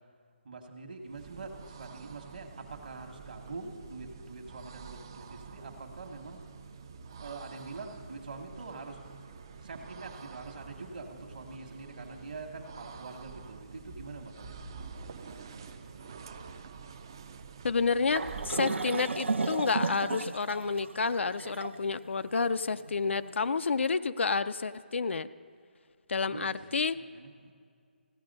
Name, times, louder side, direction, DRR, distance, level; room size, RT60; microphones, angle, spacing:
voice 1, 0.4-6.4 7.2-9.0 9.6-14.8 15.2-16.1 26.3-27.5, right 3 dB, 50° right, 3 dB, 1.2 m, -45 dB
sound 1, 1.0-18.8, right 5 dB, 20° right, 0.3 m, -48 dB
voice 2, 17.6-25.3 26.1-27.0, left 4 dB, 85° left, 12 dB, 0.4 m, -30 dB
sound 2, 18.1-23.3, right 3 dB, 90° right, 0.8 m, -34 dB
15.5 x 10.5 x 5.3 m, 2.2 s
hypercardioid pair, 175°, 6 cm